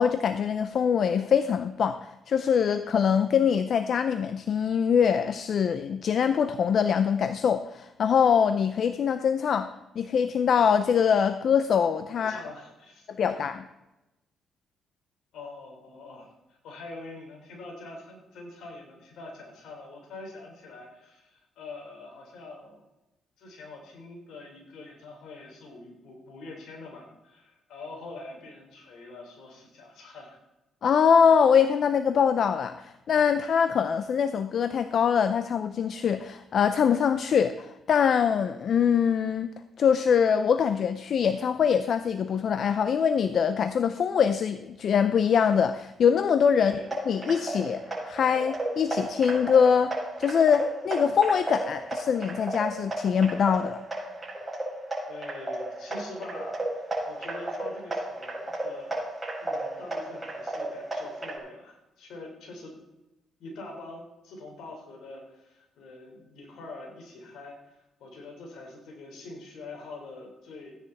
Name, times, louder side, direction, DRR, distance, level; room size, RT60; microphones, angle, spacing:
voice 1, 0.0-12.4 13.1-13.7 30.8-39.5 39.8-46.8 47.1-53.8, left 7 dB, 60° left, 11 dB, 0.6 m, -23 dB
voice 2, 12.1-13.1 15.3-22.9 23.4-30.4 46.5-46.9 55.1-56.6 57.1-59.0 59.4-62.8 63.4-70.7, left 2 dB, 80° left, 1 dB, 4.1 m, -44 dB
sound 1, 46.6-61.4, right 1 dB, 15° right, 5.7 m, -34 dB
15.5 x 10.0 x 4.2 m, 0.97 s
cardioid pair, 90°, 0 cm